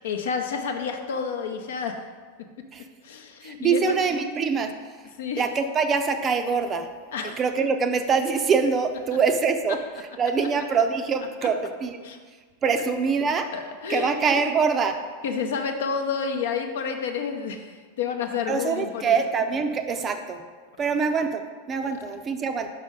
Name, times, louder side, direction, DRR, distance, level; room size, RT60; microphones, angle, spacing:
voice 1, 0.0-2.0 3.0-4.0 5.2-5.4 7.1-7.4 12.0-12.2 12.7-12.8 13.5-14.1 15.2-19.1 20.8-20.9 21.8-21.9, left 6 dB, 60° left, 5 dB, 0.7 m, -29 dB
voice 2, 3.4-4.7 5.4-6.9 7.4-9.8 10.2-12.0 12.6-13.5 13.9-15.0 18.5-20.4 20.8-21.4 21.7-22.7, right 5 dB, 25° right, 7 dB, 0.5 m, -24 dB
5.4 x 5.2 x 5.1 m, 1.5 s
figure-of-eight pair, 90°, 0 cm